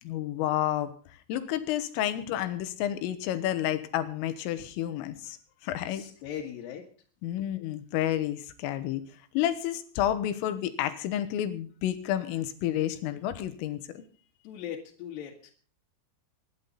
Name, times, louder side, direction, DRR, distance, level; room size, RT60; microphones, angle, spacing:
voice 1, 0.0-0.9 1.3-5.4 5.6-6.0 7.2-9.0 9.3-14.0, left 12 dB, 85° left, 11 dB, 3.8 m, -30 dB
voice 2, 5.9-6.9 14.4-15.5, left 9 dB, 65° left, -3 dB, 3.4 m, -39 dB
24.5 x 11.0 x 4.1 m, 0.43 s
omnidirectional pair, 5.8 m